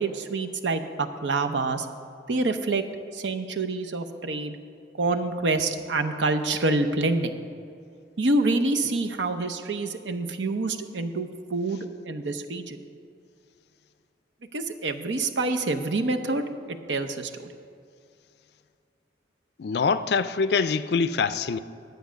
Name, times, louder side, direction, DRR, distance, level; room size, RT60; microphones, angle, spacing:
voice 1, 0.0-1.9 2.3-2.8 3.1-4.6 5.0-7.4 8.2-12.8 14.5-17.3, right 2 dB, 85° right, 0.7 m, -27 dB
voice 2, 19.6-21.6, left 5 dB, 60° left, 0.4 m, -24 dB
10.5 x 8.0 x 6.2 m
head